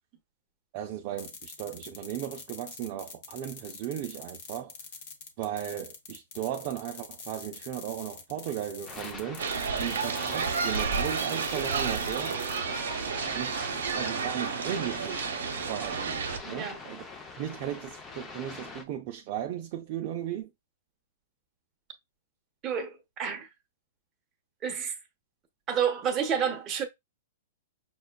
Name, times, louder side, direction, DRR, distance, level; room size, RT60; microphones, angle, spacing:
voice 1, 0.7-4.7 5.4-9.4 9.8-12.4 13.3-13.6 13.9-15.3 15.7-17.0 17.4-20.5, right 11 dB, 40° right, 0.4 m, -36 dB
sound 1, 1.2-12.6, left 5 dB, 50° left, 0.9 m, -45 dB
sound 2, 8.9-18.8, left 3 dB, 15° left, 0.5 m, -43 dB
sound 3, 9.4-16.4, right 5 dB, 85° right, 0.7 m, -31 dB
voice 2, 16.4-16.8 22.6-23.5 24.6-25.0 25.7-26.8, right 7 dB, 20° right, 0.8 m, -29 dB
5.9 x 2.2 x 2.2 m
hypercardioid pair, 150°, 0 cm